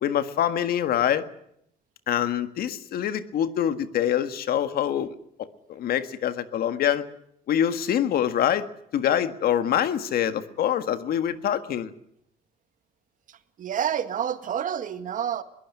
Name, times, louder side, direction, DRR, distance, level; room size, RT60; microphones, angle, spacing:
voice 1, 0.0-1.2 2.1-5.1 5.7-7.1 7.5-8.6 8.9-11.9, left 10 dB, 65° left, 11 dB, 1.7 m, -25 dB
voice 2, 13.6-15.4, right 9 dB, 50° right, 10 dB, 1.9 m, -28 dB
22.0 x 17.0 x 9.8 m, 0.74 s
cardioid pair, 110°, 17 cm